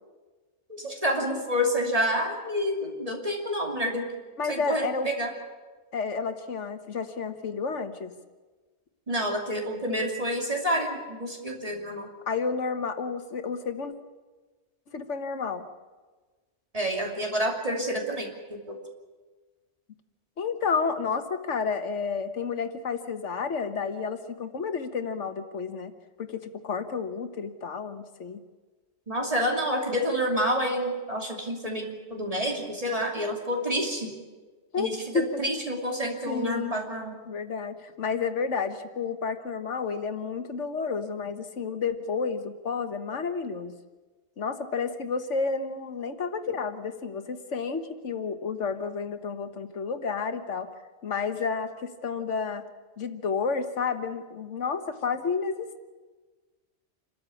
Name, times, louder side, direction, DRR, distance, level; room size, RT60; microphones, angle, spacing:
voice 1, 0.7-4.1 4.5-5.3 9.1-12.1 16.7-18.8 29.1-34.1 34.8-37.2, equal, 30° right, 0 dB, 2.8 m, -28 dB
voice 2, 4.4-5.1 5.9-8.1 12.3-13.9 14.9-15.6 20.4-25.9 26.2-28.4 34.7-35.4 36.3-36.8 37.2-43.7 44.4-50.7 51.0-52.6 53.0-55.8, left 5 dB, 90° left, 8 dB, 1.6 m, -31 dB
27.0 x 13.5 x 8.5 m, 1.3 s
omnidirectional pair, 1.2 m